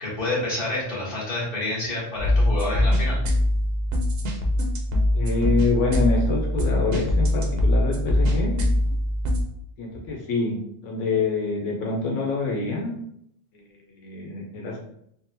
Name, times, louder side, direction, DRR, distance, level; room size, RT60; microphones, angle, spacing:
voice 1, 0.0-3.2, left 2 dB, 50° left, -7 dB, 1.4 m, -28 dB
sound 1, 2.2-9.4, left 1 dB, 60° right, 0.7 m, -22 dB
voice 2, 5.1-8.6 9.8-12.9 13.5-13.6 13.9-14.8, left 3 dB, 85° left, -1 dB, 0.9 m, -26 dB
3.7 x 2.1 x 2.6 m, 0.73 s
omnidirectional pair, 1.3 m